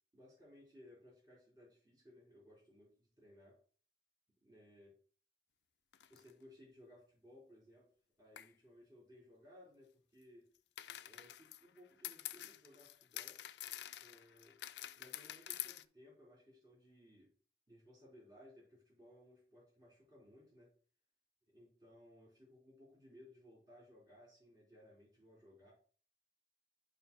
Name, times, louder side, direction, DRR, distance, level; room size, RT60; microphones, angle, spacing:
voice 1, 0.1-3.6 4.4-4.9 6.1-7.9 8.2-10.5 11.0-13.4 14.0-14.6 15.0-17.3 17.7-20.7 21.5-25.7, left 1 dB, 25° right, -5 dB, 3.7 m, -61 dB
sound 1, 5.9-6.3 8.4-8.5 10.8-15.8, left 13 dB, 75° left, 0.4 m, -48 dB
10.5 x 5.4 x 2.2 m, 0.43 s
head